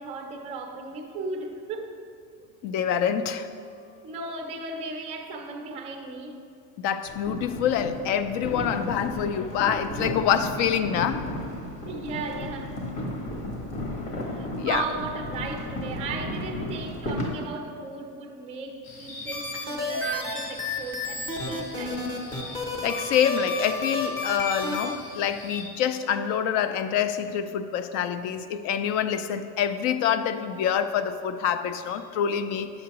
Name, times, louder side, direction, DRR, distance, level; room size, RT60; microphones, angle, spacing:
voice 1, 0.0-2.0 4.0-6.4 11.5-12.8 14.3-22.1, right 3 dB, 15° right, 3 dB, 0.4 m, -36 dB
voice 2, 2.6-3.5 6.8-11.3 14.5-14.8 22.8-32.7, left 8 dB, 50° left, 11 dB, 0.4 m, -26 dB
sound 1, 7.1-17.3, left 1 dB, 70° left, 1.6 m, -34 dB
sound 2, 18.8-25.6, left 2 dB, 90° left, 1.5 m, -43 dB
sound 3, 19.3-24.9, left 2 dB, 15° left, 0.7 m, -31 dB
9.3 x 7.7 x 2.9 m, 2.4 s
cardioid pair, 175°, 36 cm